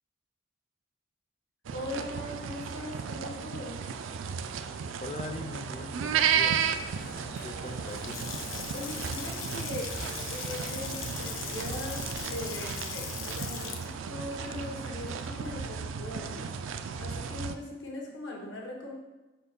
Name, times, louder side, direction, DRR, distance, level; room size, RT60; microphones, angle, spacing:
sound 1, 1.6-17.6, right 7 dB, 80° right, 0.4 m, -34 dB
voice 1, 1.7-3.8 8.7-9.9 10.3-16.6 17.0-18.9, left 1 dB, 70° left, -1 dB, 1.3 m, -40 dB
voice 2, 5.0-6.7 7.4-8.3, left 1 dB, 35° left, 5 dB, 0.5 m, -41 dB
sound 2, 6.2-12.7, equal, 50° left, 1.0 m, -46 dB
Water tap faucet / Sink (filling or washing) / Splash splatter, 7.8-15.8, left 7 dB, 90° left, 0.6 m, -41 dB
4.9 x 4.4 x 5.2 m, 1.1 s
head